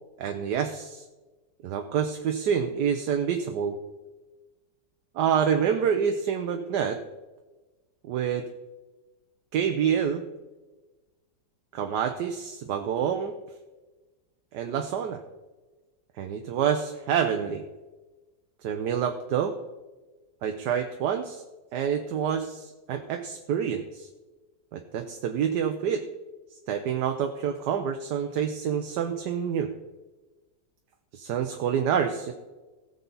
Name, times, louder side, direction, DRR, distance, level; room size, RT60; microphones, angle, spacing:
voice 1, 0.2-1.0 1.6-3.8 5.1-7.0 8.0-8.5 9.5-10.3 11.7-13.3 14.5-15.2 16.2-17.6 18.6-19.5 20.4-21.4 21.7-24.1 24.7-26.0 26.7-29.7 31.1-32.3, right 8 dB, 75° right, 5 dB, 1.3 m, -27 dB
17.0 x 7.0 x 4.0 m, 1.2 s
omnidirectional pair, 1.9 m